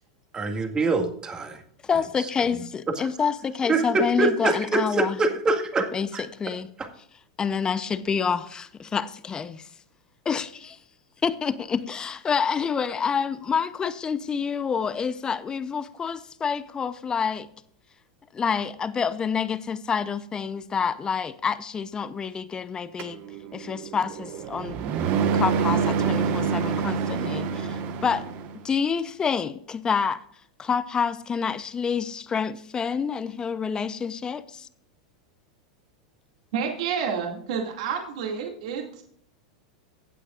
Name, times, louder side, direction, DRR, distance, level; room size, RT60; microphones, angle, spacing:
voice 1, 0.3-1.6 3.7-6.2 6.8-6.9, right 3 dB, 20° right, 1.9 m, -25 dB
voice 2, 1.8-5.2 5.9-6.7 7.4-9.7 10.2-10.8 11.2-17.5 18.3-23.2 23.5-24.8 25.3-28.2 28.6-30.2 30.6-34.7, left 6 dB, 20° left, 0.7 m, -28 dB
sound 1, 23.0-28.6, right 6 dB, 50° right, 1.4 m, -26 dB
voice 3, 36.5-39.0, right 6 dB, 70° right, 2.3 m, -29 dB
16.0 x 8.5 x 2.5 m
hypercardioid pair, 115°, 4 cm